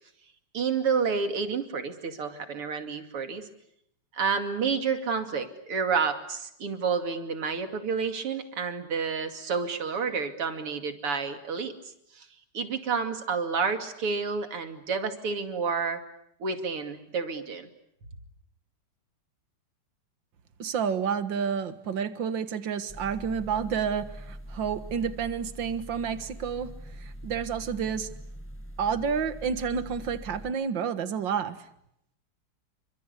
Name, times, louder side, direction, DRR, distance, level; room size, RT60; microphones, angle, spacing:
voice 1, 0.5-3.5 4.1-11.7 12.2-12.3 12.5-16.0 16.4-17.7, right 5 dB, 85° right, 3.5 m, -29 dB
voice 2, 20.6-28.1 28.8-31.7, right 7 dB, 60° right, 2.1 m, -30 dB
sound 1, 22.9-30.5, equal, 10° left, 0.7 m, -43 dB
29.0 x 25.0 x 8.3 m
omnidirectional pair, 2.4 m